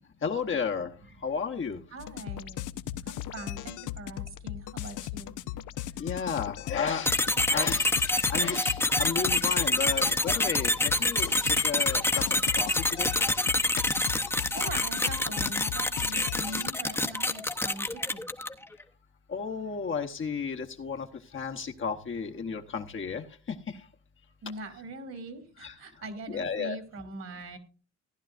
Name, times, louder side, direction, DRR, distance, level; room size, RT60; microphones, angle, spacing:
voice 1, 0.2-0.9 1.2-1.8 6.0-7.2 7.5-7.9 8.3-12.2 12.6-13.1 13.8-13.9 19.3-21.1 21.3-23.2 25.6-25.7 26.3-26.8, left 5 dB, 40° left, 4 dB, 1.0 m, -33 dB
voice 2, 1.9-5.3 14.5-18.2 24.4-27.6, right 2 dB, 60° right, 9 dB, 2.4 m, -42 dB
sound 1, 2.0-16.7, left 13 dB, 80° left, 0.6 m, -38 dB
sound 2, 7.1-18.6, left 2 dB, 10° left, 0.7 m, -27 dB
15.0 x 10.5 x 2.5 m, 0.37 s
cardioid pair, 90°, 30 cm